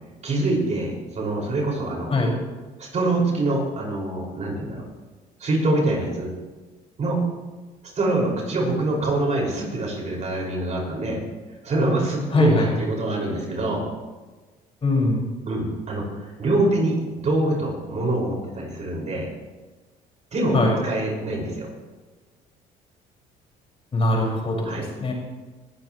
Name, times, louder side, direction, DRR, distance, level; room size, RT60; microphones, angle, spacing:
voice 1, 0.2-2.1 2.8-4.8 5.4-6.3 7.0-7.2 7.9-11.2 11.6-13.9 15.5-19.3 20.3-21.7 24.6-24.9, right 2 dB, 45° right, -1 dB, 5.8 m, -25 dB
voice 2, 12.3-12.6 14.8-15.3 20.5-20.7 23.9-25.1, left 2 dB, 35° left, -2 dB, 5.8 m, -21 dB
20.0 x 14.5 x 3.2 m, 1.3 s
cardioid pair, 110°, 17 cm